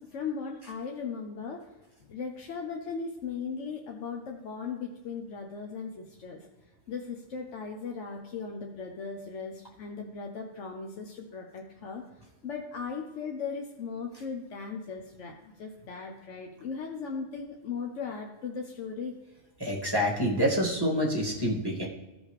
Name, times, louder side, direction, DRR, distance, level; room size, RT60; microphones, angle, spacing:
voice 1, 0.0-1.7 2.1-6.5 6.9-12.0 12.4-19.2, left 5 dB, 85° left, 2 dB, 1.2 m, -37 dB
voice 2, 19.6-21.9, equal, 20° right, -4 dB, 2.0 m, -27 dB
15.5 x 5.3 x 3.2 m, 1.1 s
omnidirectional pair, 1.2 m